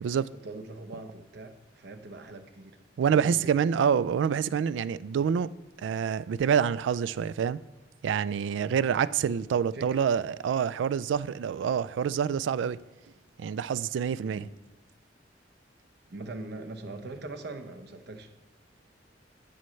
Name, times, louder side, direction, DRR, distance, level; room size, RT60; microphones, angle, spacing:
voice 1, 0.4-2.8 3.1-3.6 9.7-10.0 14.2-14.5 16.1-18.3, right 2 dB, 65° right, 0.8 m, -42 dB
voice 2, 3.0-5.5 5.8-7.6 8.0-12.8 13.4-14.4, right 7 dB, 80° right, 0.3 m, -27 dB
12.5 x 6.4 x 3.2 m
head